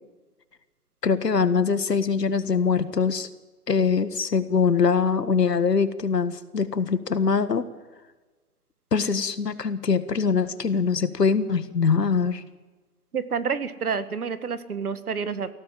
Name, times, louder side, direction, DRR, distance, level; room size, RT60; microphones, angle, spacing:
voice 1, 1.0-3.3 3.7-7.7 8.9-12.4, left 5 dB, 85° left, 12 dB, 1.8 m, -23 dB
voice 2, 13.1-15.5, right 6 dB, 65° right, 12 dB, 1.9 m, -28 dB
25.5 x 16.5 x 7.7 m, 1.3 s
hypercardioid pair, 155°, 47 cm